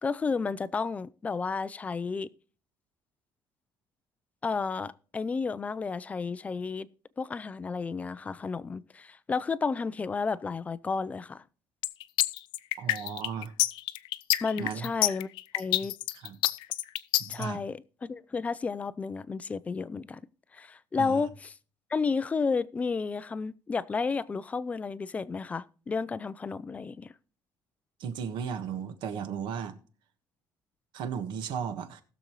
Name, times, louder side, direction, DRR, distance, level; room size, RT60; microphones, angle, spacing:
voice 1, 0.0-2.3 4.4-6.9 7.2-11.4 14.4-15.3 15.5-16.0 17.3-20.2 20.5-21.5 21.9-27.1, left 4 dB, 15° left, 0.4 m, -32 dB
sound 1, 11.8-17.4, left 16 dB, 85° left, 0.5 m, -27 dB
voice 2, 12.8-13.5 14.6-14.9 16.1-16.4 17.2-17.6 21.0-21.3 28.0-29.8 30.9-32.0, right 7 dB, 70° right, 1.4 m, -35 dB
20.0 x 6.8 x 3.1 m
cardioid pair, 175°, 8 cm